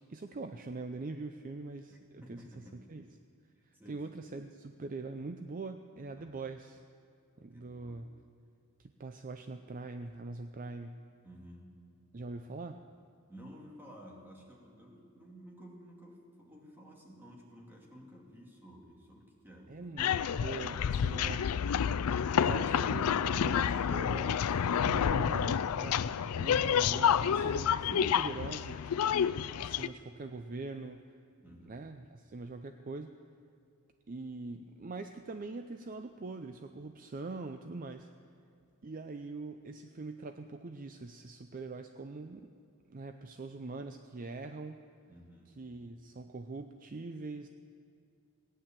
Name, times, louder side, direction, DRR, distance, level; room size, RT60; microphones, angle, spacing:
voice 1, 0.1-3.2 3.7-6.8 7.4-8.1 8.8-11.0 12.1-12.8 19.7-21.5 22.4-29.1 29.5-31.0 31.7-33.2 34.1-38.1 38.8-42.5 42.9-44.8 45.5-47.5, right 3 dB, 40° right, 7 dB, 0.5 m, -43 dB
voice 2, 1.9-2.9 3.7-4.3 6.1-6.3 7.4-8.1 11.2-11.8 13.3-19.9 24.8-25.0 31.4-31.8 45.1-45.5, equal, 10° right, -2 dB, 2.3 m, -53 dB
sound 1, 20.0-29.9, left 8 dB, 80° left, 0.4 m, -29 dB
17.0 x 10.0 x 7.4 m, 2.5 s
head